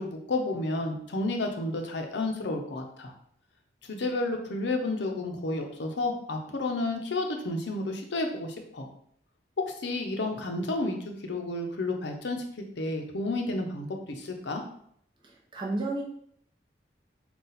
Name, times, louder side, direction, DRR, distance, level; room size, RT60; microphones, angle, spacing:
voice 1, 0.0-3.1 3.9-8.9 9.6-14.6, left 2 dB, 80° left, 3 dB, 0.6 m, -31 dB
voice 2, 15.2-16.0, right 2 dB, 25° right, -3 dB, 0.7 m, -32 dB
4.0 x 2.3 x 3.9 m, 0.67 s
head